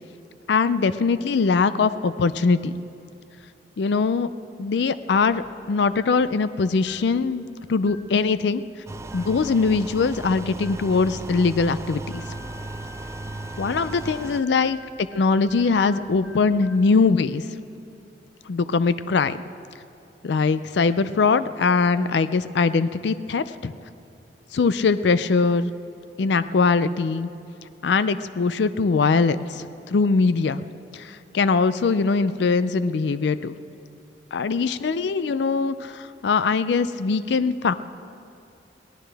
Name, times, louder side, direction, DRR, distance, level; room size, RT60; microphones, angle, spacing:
voice 1, 0.5-2.7 3.8-4.3 4.6-8.6 9.1-12.2 13.6-17.5 18.5-19.4 20.2-23.7 24.5-25.7 26.2-27.3 27.8-30.6 30.9-33.5 34.3-37.7, left 4 dB, 70° left, 14 dB, 0.4 m, -22 dB
Heartbeat with beep, 5.1-5.5 5.9-6.2 6.8-7.2 7.8-8.2 9.0-9.4 10.5-10.9 12.1-16.9, left 2 dB, 5° left, 1.8 m, -47 dB
sound 1, 8.9-14.4, right 2 dB, 15° right, 0.3 m, -36 dB
22.0 x 17.5 x 3.4 m, 2.7 s
head